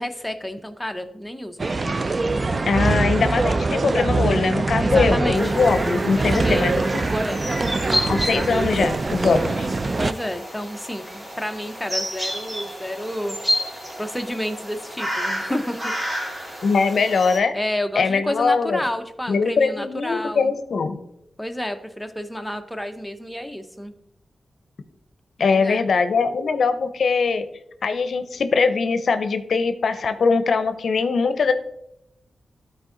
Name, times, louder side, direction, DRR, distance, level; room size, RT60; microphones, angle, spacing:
voice 1, 0.0-1.6 4.8-5.6 6.1-6.7 7.1-7.4 10.0-13.4 14.0-16.0 17.5-20.5 21.4-23.9 25.4-25.9, left 1 dB, 5° left, 6 dB, 0.7 m, -30 dB
sound 1, 1.6-10.1, right 3 dB, 40° right, 0.4 m, -23 dB
voice 2, 2.7-7.1 8.1-9.7 16.6-17.6 18.0-18.8 19.3-21.0 25.4-27.4 27.8-31.5, left 4 dB, 75° left, 10 dB, 0.5 m, -21 dB
sound 2, 5.3-17.4, equal, 20° right, 2.4 m, -30 dB
12.5 x 4.4 x 3.8 m, 0.81 s
cardioid pair, 70°, 0 cm